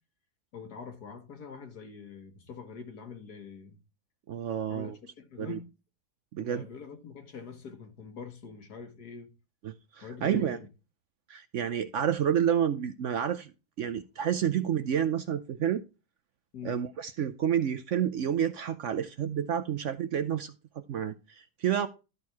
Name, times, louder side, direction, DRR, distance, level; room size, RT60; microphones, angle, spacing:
voice 1, 0.5-3.8 4.7-5.7 6.4-9.3 10.0-10.7 16.5-16.8, left 6 dB, 75° left, 2.1 m, -44 dB
voice 2, 4.3-5.0 5.4-5.6 6.3-6.7 9.6-10.6 11.3-13.5 13.8-15.8 16.6-21.9, right 9 dB, 60° right, 0.8 m, -29 dB
12.5 x 4.4 x 4.7 m
omnidirectional pair, 1.7 m